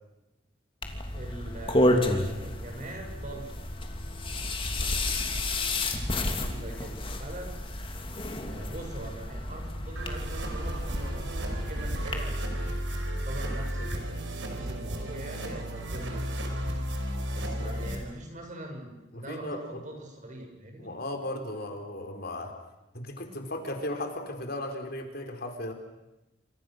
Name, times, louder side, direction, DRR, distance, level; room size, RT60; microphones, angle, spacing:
sound 1, 0.8-12.2, left 1 dB, 30° left, 3.0 m, -31 dB
voice 1, 0.9-3.6 6.3-7.6 8.4-14.1 14.4-16.8 17.3-21.0, right 1 dB, 45° right, 3 dB, 6.9 m, -43 dB
voice 2, 4.6-5.4 17.6-17.7 19.1-19.6 20.8-22.5 22.9-25.7, left 1 dB, 55° left, 5 dB, 4.0 m, -36 dB
sound 2, 10.0-18.0, equal, 85° right, 5.0 m, -33 dB
28.5 x 27.0 x 6.5 m, 0.95 s
head